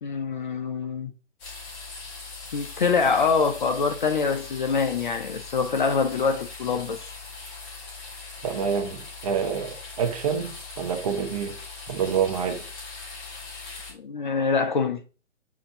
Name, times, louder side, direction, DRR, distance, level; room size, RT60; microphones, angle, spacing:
voice 1, 0.0-1.1 2.5-7.1 13.9-15.0, left 5 dB, 45° left, 0.4 m, -25 dB
sound 1, 1.4-13.9, left 4 dB, 20° left, 0.9 m, -40 dB
voice 2, 8.4-11.6 11.9-12.7, right 7 dB, 30° right, 0.6 m, -27 dB
7.1 x 2.6 x 2.6 m
figure-of-eight pair, 135°, 36 cm